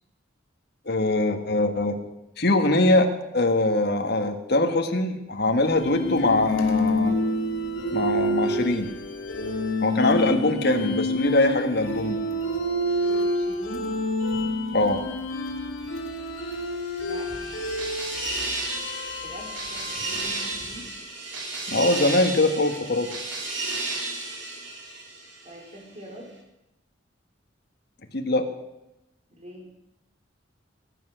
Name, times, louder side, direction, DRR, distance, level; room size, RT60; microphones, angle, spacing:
voice 1, 0.8-2.0 2.4-7.2 7.9-8.9 9.8-12.2 14.7-15.0 21.7-23.1 28.1-28.5, left 2 dB, 55° left, 5 dB, 1.8 m, -22 dB
sound 1, 5.6-20.7, left 1 dB, 85° left, 2.9 m, -28 dB
voice 2, 13.3-13.9 16.9-17.9 19.2-20.9 25.4-26.3 29.3-29.7, equal, 35° right, 1 dB, 4.2 m, -43 dB
sound 2, 16.5-25.7, right 3 dB, 70° right, 3.5 m, -33 dB
19.5 x 10.5 x 6.4 m, 0.89 s
head